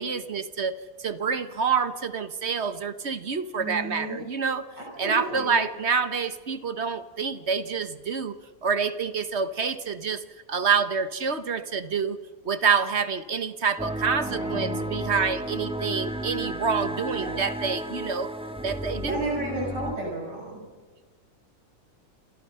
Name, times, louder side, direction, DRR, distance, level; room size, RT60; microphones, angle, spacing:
voice 1, 0.0-4.6 5.0-8.3 8.6-10.2 10.5-12.2 12.4-18.3 18.6-19.2, right 5 dB, 45° right, 12 dB, 1.2 m, -27 dB
voice 2, 3.6-4.2 4.8-5.6 14.2-14.9 17.2-17.4 19.0-20.6, right 2 dB, 75° right, -2 dB, 6.9 m, -33 dB
sound 1, 13.8-19.9, right 1 dB, 5° right, 1.4 m, -32 dB
29.0 x 27.0 x 5.6 m, 1.4 s
omnidirectional pair, 1.9 m